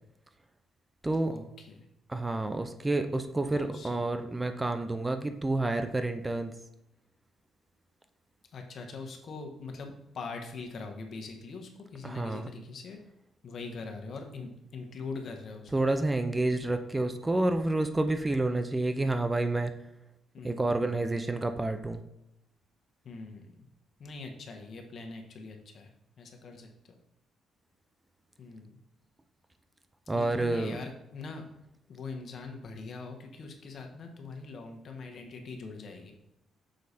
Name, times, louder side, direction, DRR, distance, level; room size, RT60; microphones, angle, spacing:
voice 1, 1.3-1.8 3.5-4.0 8.5-13.0 13.4-15.7 20.3-20.9 23.0-23.7 24.0-25.9 26.2-27.0 28.4-28.7 30.1-31.4 31.9-36.1, left 4 dB, 55° left, 3 dB, 1.3 m, -42 dB
voice 2, 2.1-6.5 12.0-12.5 15.7-19.7 20.4-22.0 30.1-30.8, right 2 dB, 15° right, 8 dB, 0.6 m, -29 dB
6.5 x 4.7 x 4.2 m, 0.83 s
cardioid pair, 90°, 0 cm